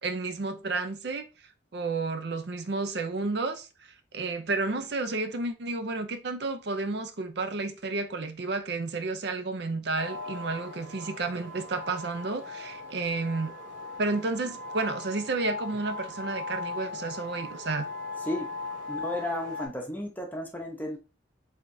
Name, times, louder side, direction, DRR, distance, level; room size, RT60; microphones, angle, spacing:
voice 1, 0.0-1.3 1.7-13.5 14.0-17.9, right 3 dB, 60° right, 0.5 m, -31 dB
sound 1, 9.9-19.7, left 3 dB, 90° right, 2.0 m, -39 dB
voice 2, 18.9-21.0, left 1 dB, 10° left, 0.8 m, -33 dB
4.9 x 3.5 x 2.6 m
head